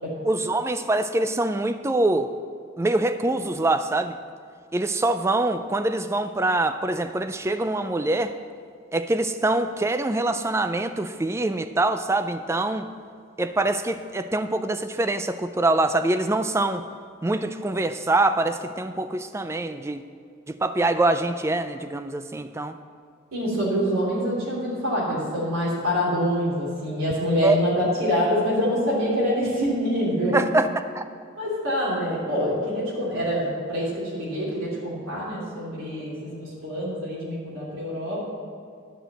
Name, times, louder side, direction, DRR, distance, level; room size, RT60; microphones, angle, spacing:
voice 1, 0.2-2.3 2.8-4.2 4.7-8.4 8.9-12.9 13.4-16.8 17.2-20.0 20.5-22.8 27.4-27.6 30.3-30.7 31.0-31.1, right 2 dB, 15° right, 10 dB, 0.3 m, -24 dB
voice 2, 23.3-30.4 31.4-38.3, equal, 80° right, -7 dB, 3.1 m, -25 dB
11.0 x 5.1 x 7.6 m, 2.2 s
head